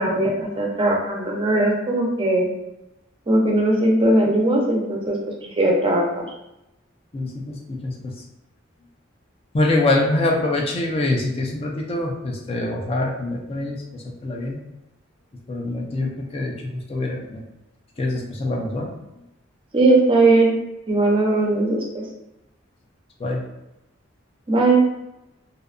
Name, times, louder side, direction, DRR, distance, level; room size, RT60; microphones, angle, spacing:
voice 1, 0.0-2.5 3.3-6.3 19.7-20.5 20.9-22.0 24.5-24.8, right 2 dB, 25° right, -1 dB, 0.5 m, -19 dB
voice 2, 7.1-7.6 7.8-8.1 9.5-13.8 14.2-14.6 15.5-17.4 18.0-18.9 23.2-23.4, left 2 dB, 30° left, -1 dB, 0.4 m, -24 dB
2.7 x 2.1 x 2.5 m, 0.90 s
head